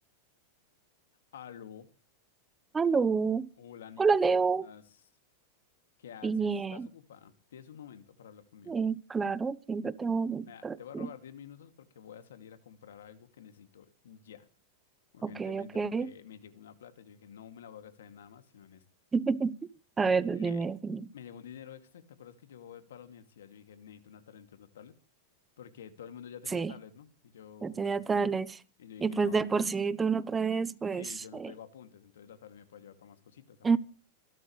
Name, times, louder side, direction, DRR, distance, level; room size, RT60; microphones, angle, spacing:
voice 1, 1.3-1.9 3.6-5.0 6.0-8.8 10.4-14.5 15.1-18.8 20.2-20.6 21.1-25.0 25.6-28.0 28.8-29.5 30.8-33.7, left 8 dB, 90° left, 2.4 m, -50 dB
voice 2, 2.7-3.5 4.0-4.7 6.2-6.9 8.7-11.1 15.2-16.1 19.1-19.5 20.0-21.0 26.5-26.7 27.6-28.6 29.0-31.0 31.3-31.5 33.6-33.8, right 5 dB, 15° right, 0.9 m, -28 dB
26.0 x 12.0 x 3.2 m
supercardioid pair, 135°, 0 cm